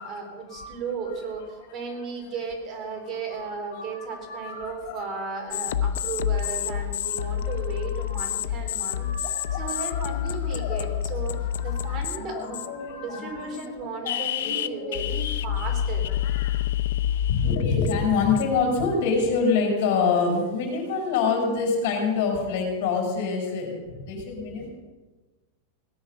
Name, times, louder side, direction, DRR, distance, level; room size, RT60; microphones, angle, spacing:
voice 1, 0.0-9.1 9.6-11.3 11.6-12.6 12.9-16.0, right 4 dB, 25° right, 1 dB, 3.3 m, -35 dB
voice 2, 3.7-5.3 6.3-8.3 8.7-14.9 16.1-16.6 17.3-24.7, left 5 dB, 60° left, 2 dB, 5.4 m, -28 dB
sound 1, 5.5-12.2 12.5-12.9 13.5-13.7 14.1-18.6, left 10 dB, 80° left, 0.7 m, -28 dB
17.5 x 10.0 x 6.5 m, 1.2 s
supercardioid pair, 155°, 0 cm